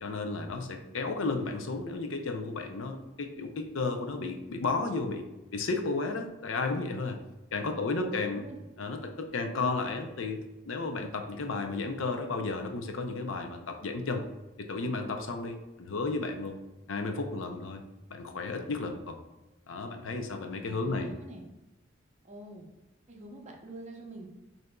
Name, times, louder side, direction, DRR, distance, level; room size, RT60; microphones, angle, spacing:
voice 1, 0.0-5.2 5.5-7.2 7.5-8.5 8.8-14.3 14.6-16.6 16.9-17.8 18.1-19.2 19.7-21.1, left 3 dB, 85° left, 5 dB, 0.6 m, -33 dB
voice 2, 7.7-8.6 20.7-21.4 22.2-22.7 23.1-24.3, right 2 dB, 35° right, 1 dB, 0.7 m, -46 dB
6.4 x 2.8 x 2.2 m, 1.0 s
head